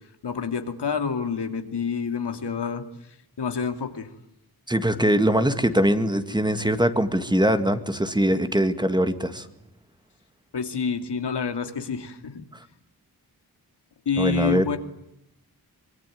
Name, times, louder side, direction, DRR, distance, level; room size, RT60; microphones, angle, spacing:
voice 1, 0.2-2.8 3.4-4.1 10.5-12.4 14.1-14.8, left 6 dB, 90° left, 7 dB, 2.7 m, -28 dB
voice 2, 4.7-9.5 14.2-14.6, right 1 dB, 10° right, 9 dB, 1.9 m, -22 dB
25.0 x 23.5 x 9.4 m, 0.80 s
wide cardioid pair, 110°, 40 cm